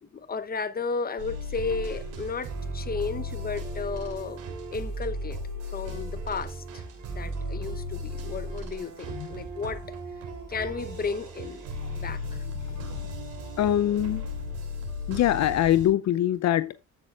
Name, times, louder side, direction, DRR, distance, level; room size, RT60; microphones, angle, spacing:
voice 1, 0.0-5.4 5.7-10.0 10.5-11.6 11.9-12.4, left 5 dB, 30° left, 0.9 m, -34 dB
sound 1, 1.2-15.9, equal, 85° right, 3.3 m, -35 dB
voice 2, 12.6-13.1 13.6-14.3 15.1-16.8, left 12 dB, 65° left, 0.6 m, -24 dB
14.5 x 6.5 x 2.4 m
cardioid pair, 90°, 30 cm